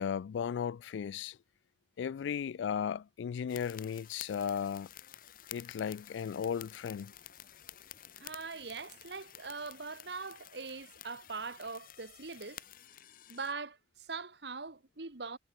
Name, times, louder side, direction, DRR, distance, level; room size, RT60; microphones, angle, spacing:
voice 1, 0.0-1.4 2.0-4.9 5.5-7.1, left 7 dB, 90° left, 0.3 m, -35 dB
sound 1, 3.5-13.5, left 11 dB, 50° left, 0.9 m, -52 dB
voice 2, 8.2-12.6 13.3-15.4, right 4 dB, 65° right, 1.6 m, -42 dB
head